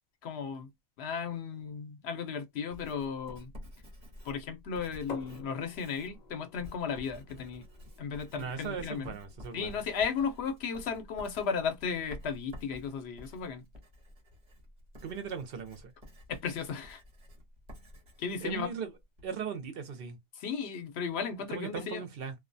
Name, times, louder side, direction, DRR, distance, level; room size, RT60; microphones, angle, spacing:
voice 1, 0.2-0.7 1.0-3.5 4.2-7.7 8.0-9.1 9.5-13.6 16.3-17.0 18.2-18.7 20.3-22.0, left 6 dB, 85° left, 0.9 m, -35 dB
Writing, 2.7-19.3, left 1 dB, 45° right, 1.0 m, -51 dB
sound 1, 5.1-10.7, left 4 dB, 50° left, 0.6 m, -51 dB
voice 2, 8.4-9.8 15.0-15.9 18.4-18.9 19.2-20.2 21.5-22.3, right 6 dB, 65° right, 0.8 m, -38 dB
2.3 x 2.1 x 2.5 m
omnidirectional pair, 1.1 m